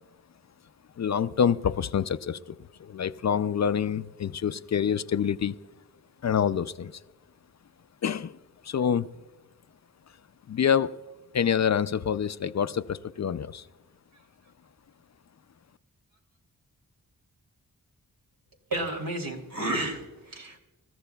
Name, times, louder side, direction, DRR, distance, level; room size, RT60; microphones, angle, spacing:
voice 1, 1.0-5.6 6.2-7.0 8.0-8.4 8.6-9.1 10.5-10.9 11.3-13.6, left 8 dB, 50° left, 14 dB, 0.4 m, -26 dB
voice 2, 18.7-20.6, right 2 dB, 70° right, 1 dB, 3.0 m, -31 dB
27.0 x 14.0 x 2.3 m, 1.1 s
wide cardioid pair, 80°, 35 cm